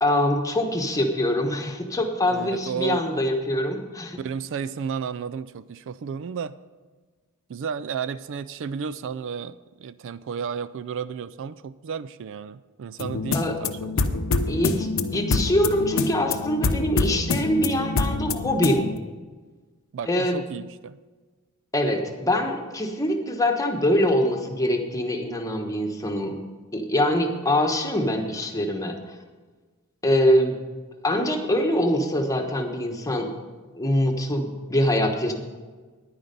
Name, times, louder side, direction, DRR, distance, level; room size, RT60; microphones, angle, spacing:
voice 1, 0.0-4.2 13.3-13.5 14.5-18.9 20.1-20.4 21.7-26.3 26.7-29.0 30.0-30.6 31.0-33.3 33.7-35.3, left 1 dB, 15° left, 3 dB, 1.2 m, -24 dB
voice 2, 2.3-3.2 4.2-6.5 7.5-14.2 19.9-21.0, right 6 dB, 60° right, 16 dB, 0.3 m, -33 dB
sound 1, 13.0-19.0, left 3 dB, 65° left, 0.7 m, -26 dB
10.0 x 9.8 x 5.3 m, 1.4 s
head